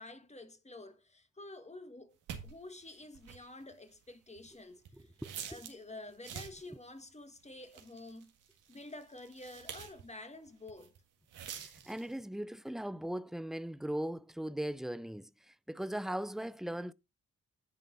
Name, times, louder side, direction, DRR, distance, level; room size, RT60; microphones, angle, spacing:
voice 1, 0.0-2.2 2.4-5.1 5.5-8.3 8.7-10.9, left 2 dB, 20° left, 1.8 m, -49 dB
sound 1, 2.3-5.8 6.1-6.7 7.3-10.1 10.5-11.0 11.3-12.2, right 8 dB, 85° right, 1.8 m, -47 dB
voice 2, 5.2-5.6 11.5-15.3 15.7-16.9, right 1 dB, ahead, 0.5 m, -39 dB
10.5 x 3.8 x 5.2 m
supercardioid pair, 55°, 30 cm